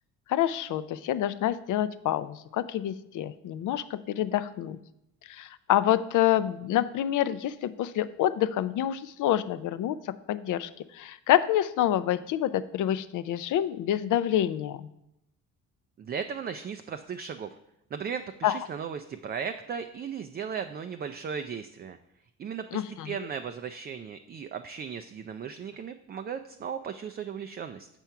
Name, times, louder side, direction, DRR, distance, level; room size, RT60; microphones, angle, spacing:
voice 1, 0.3-4.8 5.3-14.9 18.4-18.6 22.7-23.1, left 12 dB, 55° left, 15 dB, 0.5 m, -27 dB
voice 2, 16.0-17.6 17.9-22.0 22.4-27.9, right 7 dB, 30° right, 7 dB, 0.3 m, -36 dB
6.8 x 4.5 x 4.6 m, 0.83 s
supercardioid pair, 80°, 37 cm